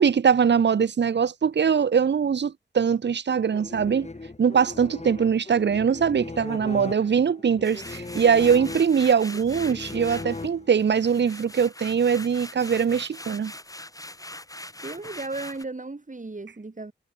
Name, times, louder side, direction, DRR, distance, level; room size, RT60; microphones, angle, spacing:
voice 1, 0.0-4.1 4.4-13.5, right 7 dB, 70° right, 0.6 m, -22 dB
sound 1, 3.5-11.0, left 3 dB, 35° left, 1.8 m, -38 dB
sound 2, 7.6-10.5 10.8-15.6, left 1 dB, 20° left, 2.7 m, -41 dB
voice 2, 14.8-16.9, right 3 dB, 45° right, 4.3 m, -35 dB
wide cardioid pair, 55°, 18 cm